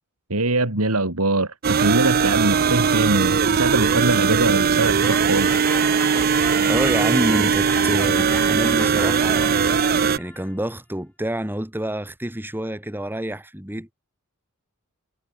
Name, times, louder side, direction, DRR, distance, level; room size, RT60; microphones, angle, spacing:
voice 1, 0.3-5.7, right 2 dB, 75° right, 4.2 m, -22 dB
sound 1, 1.6-10.2, right 6 dB, 45° right, 0.5 m, -19 dB
sound 2, 5.0-10.5, left 1 dB, 10° left, 2.0 m, -36 dB
voice 2, 6.2-9.7 10.2-13.9, right 1 dB, 10° right, 3.2 m, -28 dB
head